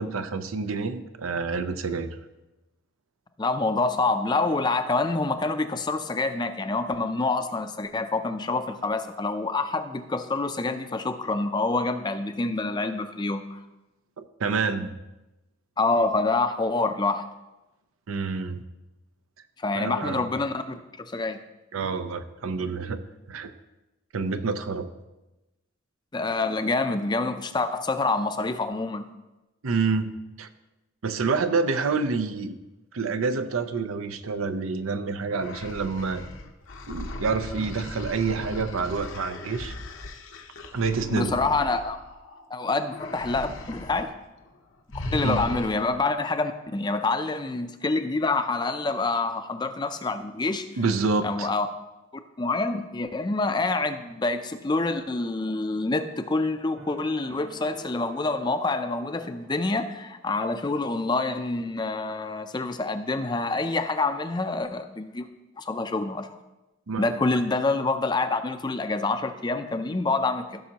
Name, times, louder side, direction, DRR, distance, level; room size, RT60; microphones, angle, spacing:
voice 1, 0.0-2.2 14.2-14.9 18.1-18.6 19.7-20.3 21.7-23.0 23.3-23.5 24.1-24.9 29.6-30.5 31.0-32.6 32.9-36.2 36.9-39.7 40.7-41.3 45.2-45.4 50.8-51.5 66.9-67.1, right 4 dB, 90° right, 9 dB, 0.6 m, -28 dB
voice 2, 3.4-13.6 15.8-17.3 19.6-21.4 26.1-29.1 41.1-42.0 42.5-44.1 44.9-50.7 51.2-51.7 52.4-65.3 65.6-66.4 67.0-70.6, left 3 dB, 20° left, 9 dB, 0.4 m, -27 dB
sound 1, 35.3-42.4 42.9-44.1 44.4-44.6 44.9-46.0, left 2 dB, 70° left, 0.8 m, -38 dB
sound 2, 56.8-60.0, right 2 dB, 70° right, 2.5 m, -47 dB
15.5 x 6.2 x 2.9 m, 1.0 s
head